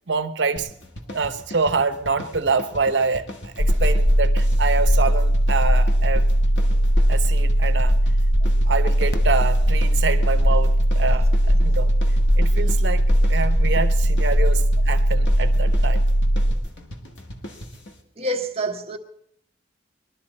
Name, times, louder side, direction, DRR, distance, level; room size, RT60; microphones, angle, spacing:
voice 1, 0.1-0.7 1.1-6.3 7.1-8.0 8.7-11.9 12.4-16.0, right 4 dB, 75° right, 0.9 m, -26 dB
sound 1, 0.6-18.0, equal, 80° left, 1.8 m, -39 dB
sound 2, 3.6-16.5, equal, 55° left, 0.8 m, -18 dB
voice 2, 18.2-19.0, right 1 dB, 35° right, 1.3 m, -27 dB
22.0 x 12.0 x 4.2 m
head